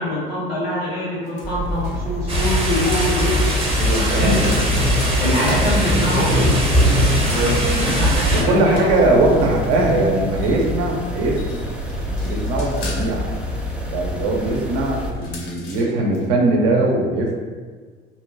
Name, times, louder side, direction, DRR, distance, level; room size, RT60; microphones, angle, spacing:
voice 1, 0.0-3.4 4.2-4.4 5.2-6.5 7.2-8.9, left 1 dB, 85° left, -6 dB, 0.9 m, -24 dB
sound 1, 1.2-2.1 3.1-6.0 6.9-10.7 11.2-13.2 15.0-16.3, left 3 dB, 65° left, 0.6 m, -41 dB
sound 2, 1.4-15.1, left 1 dB, 5° right, 0.3 m, -26 dB
sound 3, 2.3-8.4, equal, 20° right, 0.7 m, -20 dB
voice 2, 3.8-4.6 8.3-11.6 12.1-13.3 13.9-17.3, right 2 dB, 55° right, -1 dB, 0.6 m, -20 dB
2.7 x 2.2 x 2.5 m, 1.5 s
figure-of-eight pair, 60°, 29 cm